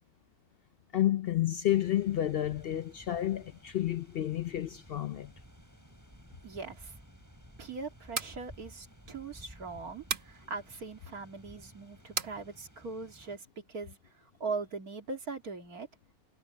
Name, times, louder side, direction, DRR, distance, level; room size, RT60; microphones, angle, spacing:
voice 1, 0.9-5.3, left 12 dB, 75° left, 0.5 m, -30 dB
sound 1, 1.7-13.4, equal, 10° right, 8.0 m, -55 dB
voice 2, 6.4-7.0 7.6-15.9, right 4 dB, 80° right, 2.8 m, -41 dB
sound 2, 8.0-8.4 10.1-10.4 12.2-12.4, right 6 dB, 45° right, 1.2 m, -34 dB
omnidirectional pair, 1.5 m